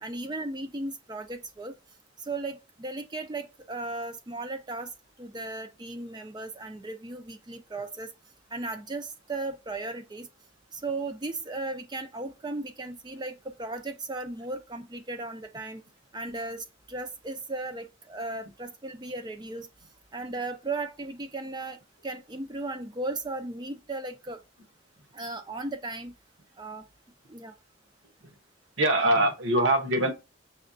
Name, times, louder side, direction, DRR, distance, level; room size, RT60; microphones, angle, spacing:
voice 1, 0.0-1.7 2.2-4.9 5.2-8.1 8.5-10.3 10.7-15.8 16.1-19.7 20.1-24.4 25.1-26.1 26.6-26.8 27.3-27.5, right 2 dB, 20° right, 0.4 m, -36 dB
voice 2, 28.8-30.1, right 1 dB, 65° right, 1.0 m, -23 dB
6.0 x 3.2 x 2.6 m
head